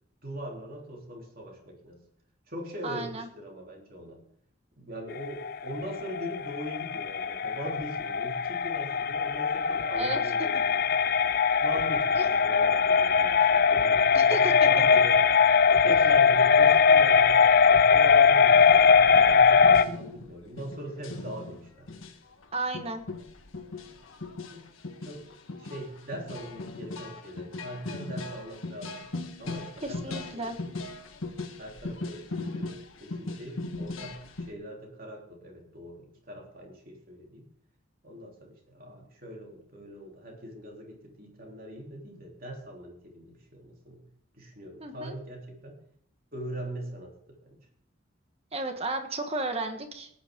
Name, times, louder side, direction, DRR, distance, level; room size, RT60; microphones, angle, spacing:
voice 1, 0.2-2.0 2.5-4.2 4.8-11.0 11.6-15.2 15.8-21.9 24.5-24.7 25.0-25.3 25.6-29.1 29.4-30.8 31.6-37.4 38.0-44.1 44.4-45.8 46.3-47.6, equal, 45° right, 0 dB, 3.3 m, -41 dB
voice 2, 2.8-3.3 9.9-10.2 12.1-12.3 14.1-14.7 15.8-16.0 22.5-23.0 29.8-30.6 44.8-45.1 48.5-50.1, right 2 dB, 30° right, 6 dB, 1.5 m, -33 dB
sound 1, 5.2-19.8, left 6 dB, 50° left, 0.5 m, -21 dB
sound 2, 18.5-34.5, left 2 dB, 85° left, 1.5 m, -39 dB
18.0 x 9.7 x 3.8 m, 0.67 s
head